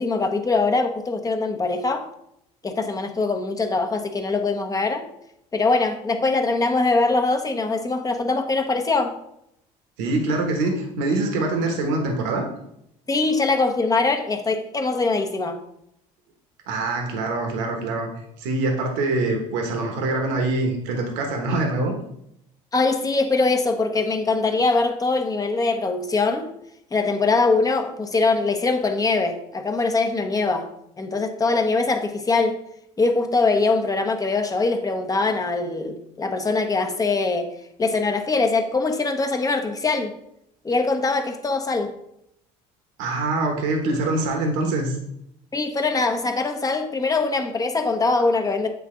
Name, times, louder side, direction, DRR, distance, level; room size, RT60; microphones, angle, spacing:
voice 1, 0.0-2.0 2.6-5.1 5.5-9.2 13.1-15.6 22.7-26.5 26.9-30.7 31.0-32.6 33.0-37.5 37.8-40.1 40.6-41.9 45.5-48.7, left 3 dB, 25° left, 5 dB, 0.9 m, -22 dB
voice 2, 10.0-12.5 16.7-18.1 18.4-21.9 43.0-45.0, right 2 dB, 85° right, 3 dB, 1.1 m, -24 dB
8.1 x 3.6 x 3.7 m, 0.77 s
supercardioid pair, 90°, 15 cm